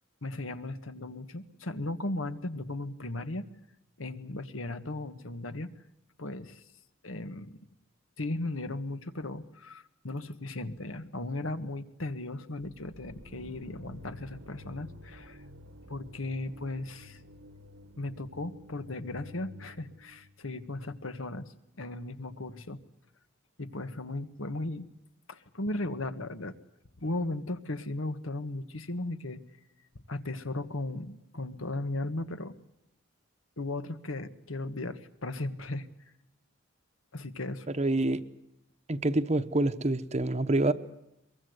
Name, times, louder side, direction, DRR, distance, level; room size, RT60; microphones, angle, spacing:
voice 1, 0.2-3.5 4.0-5.7 6.2-6.6 7.0-7.6 8.2-15.5 15.9-17.2 18.0-22.8 23.6-24.9 25.3-26.5 27.0-29.4 30.1-32.6 33.6-35.9 37.1-37.7, left 2 dB, 85° left, 10 dB, 1.7 m, -36 dB
sound 1, 12.6-20.4, left 1 dB, 80° right, 1.6 m, -50 dB
voice 2, 37.7-38.2 38.9-40.7, right 2 dB, 35° right, 9 dB, 0.9 m, -27 dB
23.0 x 23.0 x 8.1 m, 0.84 s
head